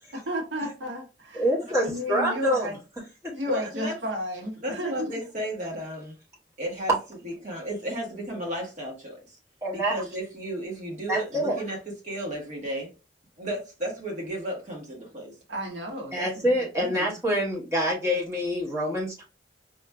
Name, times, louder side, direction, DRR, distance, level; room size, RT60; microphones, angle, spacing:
voice 1, 0.3-1.4 1.8-2.8 3.3-5.1 15.5-17.1, equal, 90° right, 1.2 m, -33 dB
voice 2, 1.3-2.7 3.2-3.3 9.6-9.9 11.1-11.6 16.1-19.2, equal, 15° right, 1.0 m, -26 dB
voice 3, 3.5-4.0 4.6-6.2 6.6-7.0 7.2-9.4 9.7-12.9 13.4-15.3, right 1 dB, 40° right, 1.2 m, -34 dB
4.9 x 2.5 x 2.2 m
head